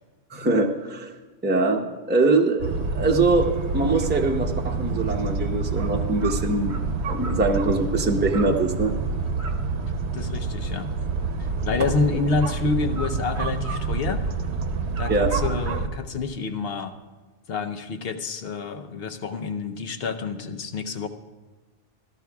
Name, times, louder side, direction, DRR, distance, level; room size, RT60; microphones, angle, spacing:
voice 1, 0.3-1.1 1.4-6.8 7.1-8.9 15.1-15.3, right 3 dB, 10° right, 2 dB, 0.6 m, -23 dB
sound 1, 2.6-15.9, right 4 dB, 70° right, 1.1 m, -27 dB
voice 2, 10.1-10.9 11.4-14.2 15.0-16.9 17.5-21.1, left 4 dB, 60° left, 6 dB, 0.9 m, -28 dB
18.0 x 13.5 x 2.3 m, 1.3 s
omnidirectional pair, 1.2 m